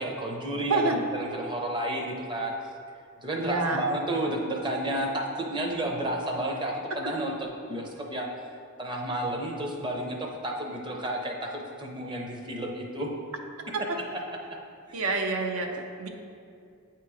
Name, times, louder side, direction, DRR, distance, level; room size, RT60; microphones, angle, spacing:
voice 1, 0.0-0.8 1.1-2.5 3.2-8.3 8.8-13.1 14.3-14.4, right 1 dB, 20° right, 0 dB, 0.6 m, -31 dB
voice 2, 0.7-1.0 3.4-3.8 13.9-14.0 14.9-16.1, right 3 dB, 70° right, 3 dB, 0.6 m, -27 dB
8.3 x 3.0 x 4.8 m, 2.4 s
head